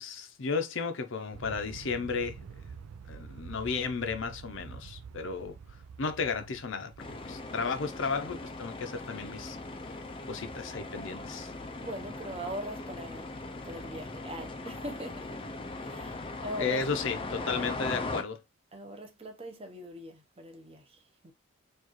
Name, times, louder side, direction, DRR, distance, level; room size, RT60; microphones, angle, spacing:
voice 1, 0.0-2.4 3.1-5.5 6.0-6.9 7.2-9.6 10.3-11.5 16.6-18.4, left 5 dB, 60° left, 0.6 m, -33 dB
Aircraft, 1.3-7.7, right 6 dB, 90° right, 0.4 m, -47 dB
sound 1, 7.0-18.2, left 2 dB, 25° left, 0.4 m, -39 dB
voice 2, 11.8-13.3 13.6-15.4 15.8-17.0 17.3-17.7 18.7-21.3, equal, 25° right, 0.8 m, -41 dB
4.6 x 2.5 x 3.0 m
head